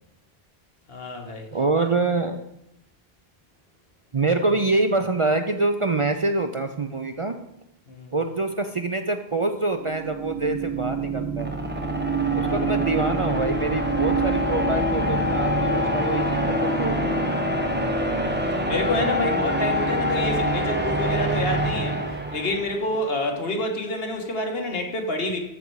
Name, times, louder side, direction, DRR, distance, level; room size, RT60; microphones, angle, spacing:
voice 1, 0.9-1.5 1.8-1.9 7.9-8.1 12.2-13.1 18.0-22.0 22.3-25.4, left 1 dB, 70° left, 3 dB, 1.6 m, -28 dB
voice 2, 1.5-2.4 4.1-7.3 8.1-11.6 12.3-17.1, right 3 dB, 40° right, 7 dB, 0.5 m, -25 dB
sound 1, 9.8-22.9, right 1 dB, 10° right, 0.8 m, -25 dB
14.0 x 5.4 x 4.7 m, 0.84 s
omnidirectional pair, 1.0 m